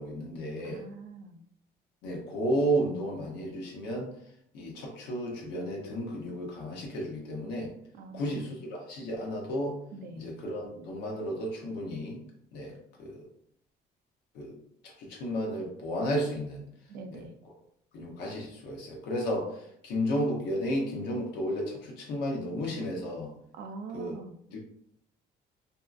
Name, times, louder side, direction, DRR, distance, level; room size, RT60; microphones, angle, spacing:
voice 1, 0.0-0.8 2.0-4.1 4.5-7.7 8.1-9.8 10.2-12.2 12.5-13.3 14.3-14.6 14.8-16.7 17.1-17.2 17.9-23.3 23.9-24.2 24.5-24.6, equal, 90° left, 0 dB, 0.8 m, -33 dB
voice 2, 0.6-1.4 7.9-8.6 9.9-10.3 16.9-17.3 23.5-24.4, right 3 dB, 70° right, 6 dB, 0.4 m, -43 dB
2.6 x 2.3 x 2.5 m, 0.69 s
cardioid pair, 110°, 17 cm